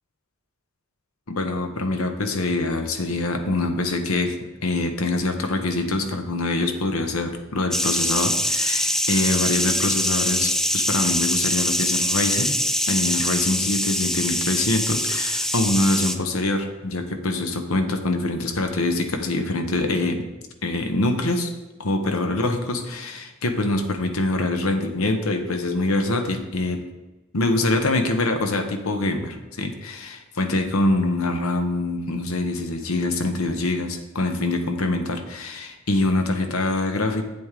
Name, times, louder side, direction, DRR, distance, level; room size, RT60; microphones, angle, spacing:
voice 1, 1.3-4.4 4.6-12.6 12.9-20.3 20.6-21.5 21.8-26.8 27.3-37.2, left 2 dB, 90° left, 6 dB, 0.9 m, -24 dB
sound 1, 7.7-16.2, equal, ahead, 0.4 m, -23 dB
8.2 x 7.7 x 3.7 m, 1.1 s
head